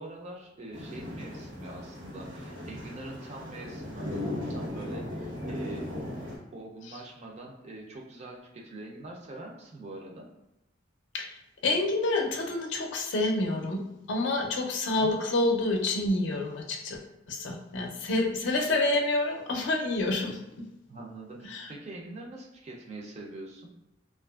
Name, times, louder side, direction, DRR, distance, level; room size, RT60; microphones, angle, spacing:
voice 1, 0.0-4.2 4.5-5.9 6.5-10.3 14.9-15.2 20.9-23.7, right 2 dB, 35° right, -1 dB, 0.4 m, -43 dB
sound 1, 0.7-6.4, left 1 dB, 85° right, 1.0 m, -37 dB
voice 2, 11.6-13.8 14.1-17.0 17.3-20.7 21.4-21.7, left 2 dB, 70° left, 2 dB, 0.4 m, -28 dB
2.7 x 2.4 x 2.3 m, 0.93 s
head